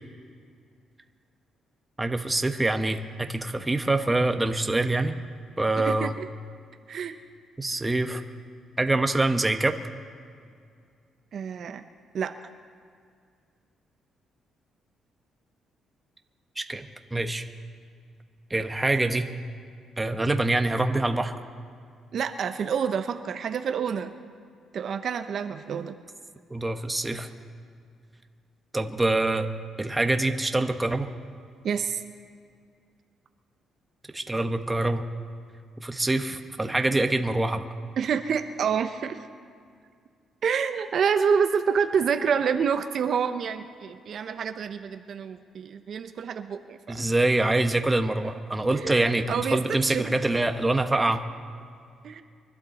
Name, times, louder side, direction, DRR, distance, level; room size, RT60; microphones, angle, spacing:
voice 1, 2.0-5.1 5.6-6.2 7.6-8.2 8.8-9.8 16.6-17.5 18.5-19.3 20.0-21.3 26.5-27.3 28.7-29.5 29.8-31.1 34.1-35.1 35.8-37.7 46.9-51.2, right 2 dB, 15° right, 7 dB, 0.9 m, -25 dB
voice 2, 5.8-6.3 6.9-7.2 11.3-11.8 12.1-12.3 22.1-24.1 24.7-25.9 31.6-32.0 38.0-39.3 40.4-47.1 48.2-48.3 48.7-48.9 49.3-50.1 52.0-52.2, right 7 dB, 60° right, 8 dB, 0.7 m, -28 dB
24.0 x 12.0 x 4.1 m, 2.2 s
cardioid pair, 90°, 0 cm